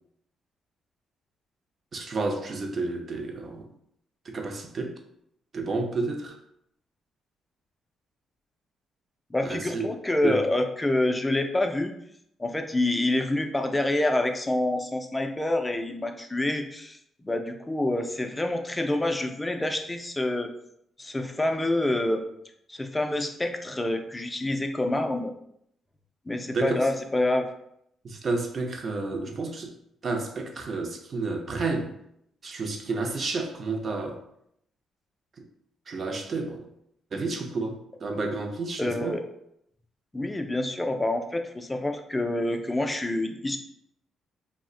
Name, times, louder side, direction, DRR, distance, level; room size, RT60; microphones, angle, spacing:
voice 1, 1.9-3.7 4.3-5.0 5.5-6.4 9.4-9.9 10.2-10.4 26.5-26.9 28.0-29.7 30.0-31.9 32.4-34.2 35.9-36.7 37.1-39.2, right 3 dB, 45° right, 0.5 m, -30 dB
voice 2, 9.3-11.9 12.4-17.0 17.2-20.5 21.0-22.3 22.7-25.3 26.3-27.5 38.8-39.2 40.1-43.6, left 1 dB, 15° left, 0.4 m, -27 dB
2.4 x 2.1 x 3.6 m
cardioid pair, 90°, 0 cm